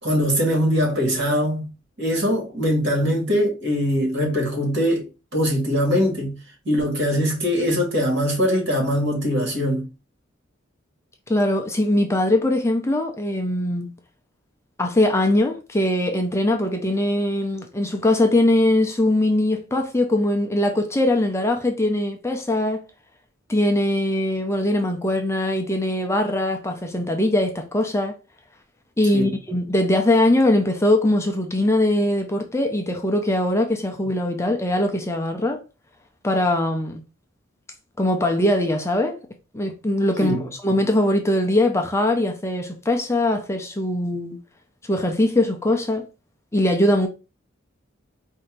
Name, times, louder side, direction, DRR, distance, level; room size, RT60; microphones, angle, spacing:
voice 1, 0.0-1.7 2.0-6.4 6.7-9.9 29.1-29.4 40.2-40.5, equal, 60° right, 2.2 m, -22 dB
voice 2, 11.3-13.9 14.8-22.8 23.5-28.2 29.0-35.6 36.2-37.0 38.0-39.2 39.5-44.4 44.9-46.1 46.5-47.1, left 1 dB, 15° left, 0.5 m, -21 dB
4.4 x 2.7 x 3.8 m
head